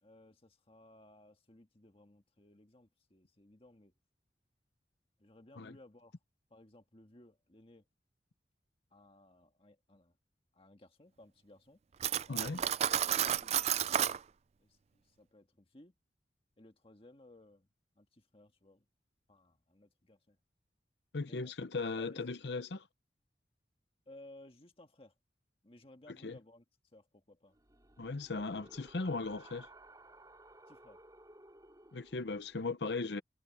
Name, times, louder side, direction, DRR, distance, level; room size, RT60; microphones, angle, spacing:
voice 1, 0.0-3.9 5.2-6.1 6.5-7.8 8.9-10.2 10.5-11.8 12.3-14.2 14.6-15.9 16.6-17.7 17.9-18.8 19.3-20.4 21.3-21.5 22.0-22.2 24.0-25.1 25.6-26.6 26.9-27.5 30.7-31.0, left 1 dB, 35° left, 1.7 m, -59 dB
Cutlery silverware, 12.0-14.2, right 10 dB, 35° right, 0.3 m, -31 dB
voice 2, 12.3-12.6 21.1-22.9 26.1-26.4 28.0-29.7 31.9-33.2, left 3 dB, 75° left, 0.8 m, -38 dB
sound 1, 27.5-32.7, right 2 dB, 20° right, 5.0 m, -58 dB
head